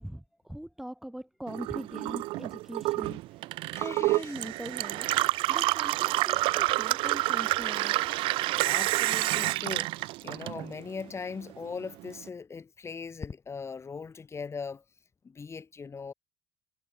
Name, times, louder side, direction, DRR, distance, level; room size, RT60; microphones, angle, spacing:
voice 1, 0.0-5.1 5.5-8.2, equal, 5° right, 8.0 m, -42 dB
Gurgling / Water tap faucet / Sink (filling or washing), 1.5-11.0 11.3-12.2, right 19 dB, 75° right, 1.1 m, -28 dB
voice 2, 3.7-4.3 8.6-14.8 15.2-16.1, left 5 dB, 30° left, 4.6 m, -40 dB
supercardioid pair, 85°, 9 cm